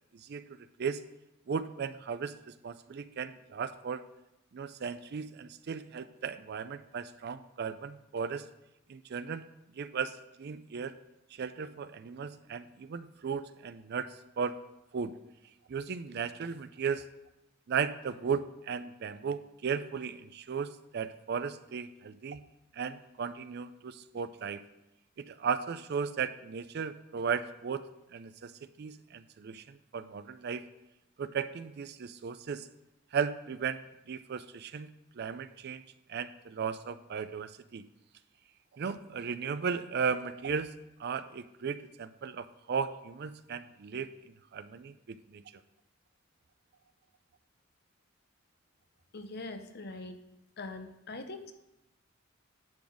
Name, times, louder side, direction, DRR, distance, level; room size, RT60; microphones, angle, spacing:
voice 1, 0.1-1.0 1.5-4.0 4.5-8.5 8.9-9.5 9.8-10.9 11.3-14.6 14.9-15.2 15.7-17.1 17.7-22.4 22.7-24.6 25.2-27.8 28.1-28.5 28.8-30.6 31.2-32.7 33.1-35.8 36.1-37.9 38.7-40.7 41.0-45.4, right 6 dB, 55° right, 13 dB, 0.4 m, -36 dB
voice 2, 49.1-50.2 50.6-51.5, left 2 dB, 55° left, 8 dB, 0.8 m, -42 dB
10.5 x 4.0 x 6.2 m, 0.89 s
head